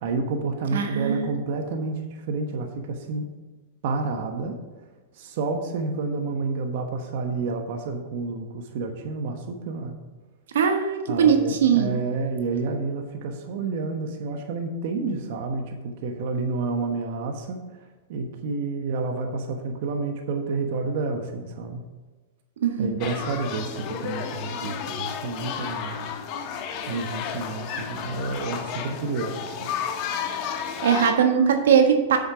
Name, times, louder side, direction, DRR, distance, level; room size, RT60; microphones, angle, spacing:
voice 1, 0.0-3.3 3.8-4.6 5.1-10.0 11.1-17.6 18.1-21.8 22.8-26.2 26.9-29.7, right 3 dB, 60° right, 4 dB, 1.1 m, -29 dB
voice 2, 0.7-1.3 10.5-11.9 22.6-22.9 30.8-32.2, right 7 dB, 85° right, 5 dB, 1.3 m, -20 dB
sound 1, 23.0-31.1, left 7 dB, 45° left, 1.2 m, -32 dB
7.9 x 6.5 x 5.8 m, 1.2 s
hypercardioid pair, 135°, 0 cm